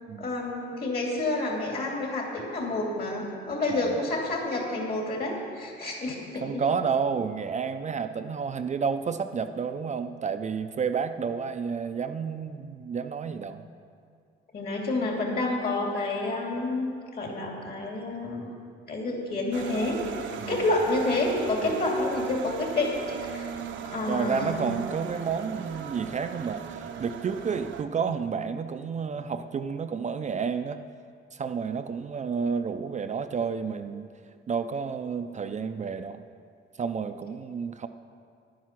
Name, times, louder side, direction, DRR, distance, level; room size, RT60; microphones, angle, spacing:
voice 1, 0.2-6.6 14.5-18.5 18.9-20.1 20.5-23.5 23.8-24.7, left 2 dB, 50° left, 0 dB, 2.7 m, -29 dB
voice 2, 6.4-13.6 20.4-20.6 21.6-21.7 24.0-30.8 31.3-34.1 34.5-36.2 36.8-37.9, right 6 dB, 35° right, 8 dB, 0.5 m, -30 dB
sound 1, 19.5-27.8, right 7 dB, 75° right, 0.8 m, -38 dB
10.0 x 9.4 x 5.9 m, 2.3 s
cardioid pair, 90°, 20 cm